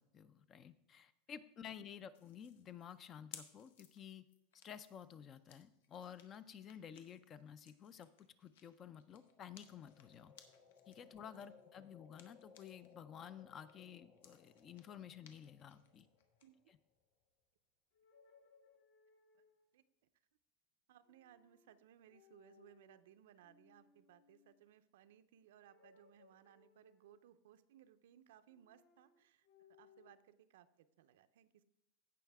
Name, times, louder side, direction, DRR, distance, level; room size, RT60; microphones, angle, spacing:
voice 1, 0.0-4.2 4.6-8.1 8.4-10.3 10.9-16.1 16.7-16.8, left 8 dB, 25° left, 15 dB, 0.4 m, -53 dB
sound 1, 2.1-12.9 13.3-16.5, left 8 dB, 90° left, 1.3 m, -63 dB
sound 2, 8.9-17.0, left 6 dB, 40° left, 1.4 m, -66 dB
voice 2, 16.4-16.7 19.3-19.4 19.7-19.8 20.9-31.6, right 10 dB, 80° right, 11 dB, 0.6 m, -64 dB
sound 3, 17.9-19.7 21.0-21.8 22.1-23.0 23.4-24.6 25.6-27.4 28.5-30.2, left 6 dB, 55° left, 1.5 m, -69 dB
16.0 x 5.7 x 3.5 m, 0.87 s
supercardioid pair, 175°, 0 cm